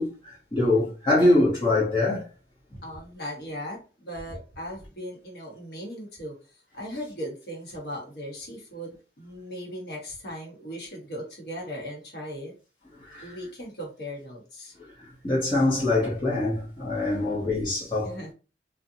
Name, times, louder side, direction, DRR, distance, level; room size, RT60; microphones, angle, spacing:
voice 1, 0.0-2.2 13.1-13.3 15.2-18.2, left 2 dB, 25° left, 0.9 m, -24 dB
voice 2, 2.8-6.3 6.7-12.5 13.2-14.7 17.1-17.5 18.0-18.3, equal, 65° left, 1.0 m, -38 dB
2.6 x 2.2 x 2.6 m
head